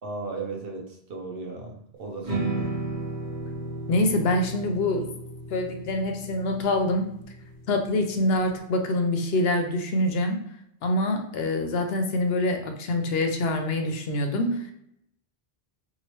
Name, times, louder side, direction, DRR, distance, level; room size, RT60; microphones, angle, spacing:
voice 1, 0.0-2.7, right 3 dB, 65° right, 0 dB, 0.8 m, -36 dB
sound 1, 2.2-8.5, right 2 dB, 45° right, 1.3 m, -34 dB
voice 2, 3.9-5.1 5.5-7.1 7.7-10.4 10.8-14.7, left 1 dB, 70° left, 5 dB, 0.8 m, -25 dB
3.0 x 2.6 x 2.9 m, 0.72 s
omnidirectional pair, 1.1 m